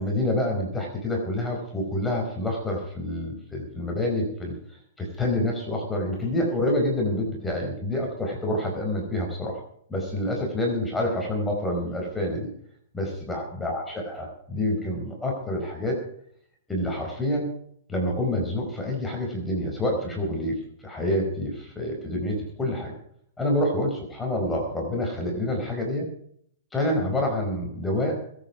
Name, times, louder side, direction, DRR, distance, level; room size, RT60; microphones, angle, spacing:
voice 1, 0.0-4.5 5.0-9.6 9.9-12.5 12.9-16.0 16.7-17.5 17.9-22.9 23.4-26.1 26.7-28.2, left 1 dB, 10° left, 0 dB, 4.7 m, -27 dB
21.5 x 9.1 x 4.9 m, 0.66 s
hypercardioid pair, 115°, 0 cm